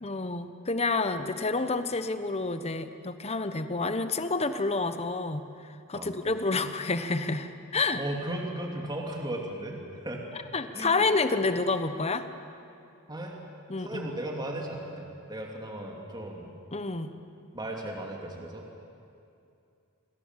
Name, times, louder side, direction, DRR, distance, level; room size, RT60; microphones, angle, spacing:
voice 1, 0.0-5.4 5.9-8.0 10.5-12.3 13.7-14.1 16.7-17.1, left 3 dB, 30° left, 10 dB, 1.1 m, -29 dB
voice 2, 8.0-10.2 10.7-11.0 13.1-13.4 13.8-16.5 17.5-18.7, right 1 dB, 20° right, 0 dB, 2.7 m, -36 dB
28.0 x 21.5 x 7.6 m, 2.6 s
head